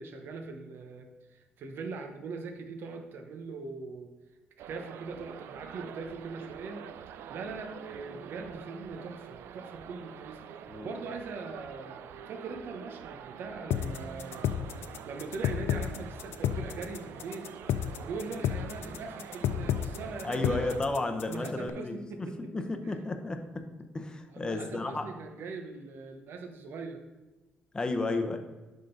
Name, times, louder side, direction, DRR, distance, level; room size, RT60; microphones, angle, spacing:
voice 1, 0.0-4.1 4.7-6.8 7.3-17.5 18.0-20.7 21.2-23.0 24.3-27.0, right 4 dB, 70° right, 5 dB, 0.9 m, -41 dB
sound 1, 4.6-20.8, right 9 dB, 90° right, 0.4 m, -46 dB
sound 2, 13.7-21.7, left 9 dB, 90° left, 0.3 m, -31 dB
voice 2, 20.2-22.3 22.5-23.6 23.9-25.0 27.7-28.4, left 2 dB, 20° left, 6 dB, 0.7 m, -32 dB
11.0 x 3.8 x 3.9 m, 1.2 s
cardioid pair, 120°, 4 cm